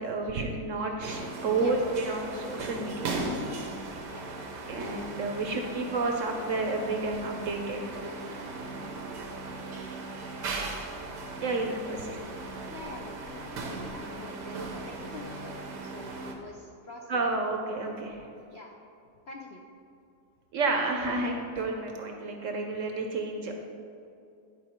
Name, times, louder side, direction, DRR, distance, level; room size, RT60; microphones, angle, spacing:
voice 1, 0.0-3.1 4.7-7.8 9.2-9.3 11.4-12.2 17.1-18.3 20.5-23.5, right 3 dB, 60° right, 3 dB, 0.9 m, -30 dB
sound 1, 1.0-16.3, right 2 dB, 90° right, 1.6 m, -38 dB
voice 2, 12.7-17.2 18.5-18.7 19.3-19.6, left 2 dB, 65° left, 0 dB, 0.6 m, -45 dB
10.5 x 4.9 x 4.4 m, 2.6 s
omnidirectional pair, 1.8 m